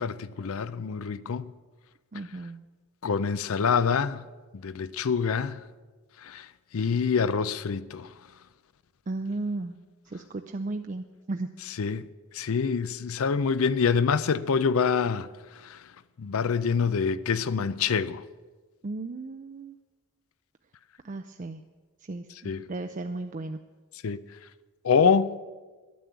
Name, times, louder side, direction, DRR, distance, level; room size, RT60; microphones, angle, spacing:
voice 1, 0.0-1.5 3.0-4.2 4.6-5.6 6.2-6.5 6.7-8.1 11.8-12.1 12.3-15.3 15.6-15.8 16.2-18.2 22.4-22.6 24.0-24.2 24.8-25.3, left 6 dB, 70° left, 0.5 m, -26 dB
voice 2, 2.1-2.6 9.1-9.8 10.0-11.5 18.8-19.8 21.0-21.6 22.0-23.6, right 2 dB, 35° right, 0.4 m, -35 dB
11.0 x 9.4 x 8.1 m
head